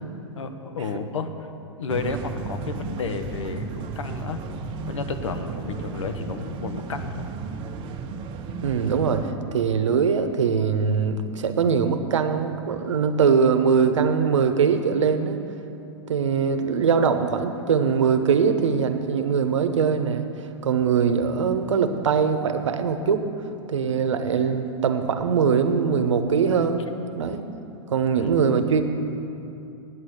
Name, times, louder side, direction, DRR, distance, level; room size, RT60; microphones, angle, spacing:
voice 1, 0.3-1.5 1.8-4.4 4.8-7.3 28.2-28.4, left 4 dB, 85° left, 8 dB, 1.0 m, -31 dB
sound 1, 1.9-9.3, right 4 dB, 35° right, 0.9 m, -34 dB
voice 2, 8.6-15.4 16.1-20.3 20.6-23.2 23.7-26.9 27.1-27.4 27.9-28.9, right 6 dB, 85° right, 8 dB, 0.9 m, -22 dB
9.3 x 8.8 x 8.0 m, 2.8 s
hypercardioid pair, 125°, 15 cm